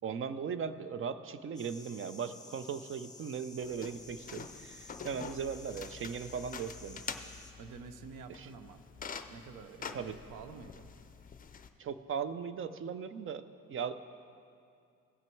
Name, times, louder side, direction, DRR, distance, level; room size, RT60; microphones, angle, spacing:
voice 1, 0.0-7.0 8.3-8.5 9.9-10.2 11.8-13.9, right 6 dB, 45° right, 12 dB, 0.5 m, -38 dB
sound 1, 1.5-7.5, left 3 dB, 10° left, 1.0 m, -53 dB
sound 2, 3.6-11.7, left 6 dB, 30° left, 0.5 m, -46 dB
voice 2, 7.6-8.8 9.3-10.9, right 5 dB, 85° right, 10 dB, 0.7 m, -49 dB
16.5 x 6.0 x 4.5 m, 2.4 s
cardioid pair, 90°, 30 cm